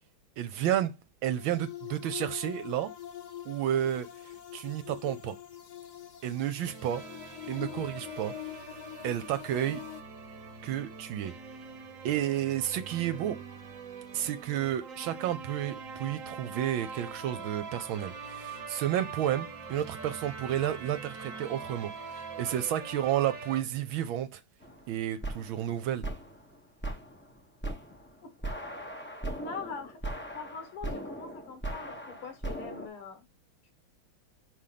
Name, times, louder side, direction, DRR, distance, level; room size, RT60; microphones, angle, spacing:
voice 1, 0.4-0.9 1.2-2.9 3.4-4.1 4.5-5.4 6.2-7.0 7.5-8.3 9.0-9.8 10.6-11.3 12.0-13.4 14.1-24.4 24.9-26.1, right 11 dB, 75° right, 1.4 m, -31 dB
sound 1, 1.4-10.0, left 12 dB, 60° left, 1.2 m, -44 dB
sound 2, 6.7-23.6, right 5 dB, 45° right, 1.2 m, -43 dB
sound 3, 24.6-32.9, right 1 dB, 15° left, 0.3 m, -39 dB
voice 2, 29.4-33.3, left 5 dB, 85° left, 2.4 m, -43 dB
5.3 x 4.9 x 5.7 m
omnidirectional pair, 2.4 m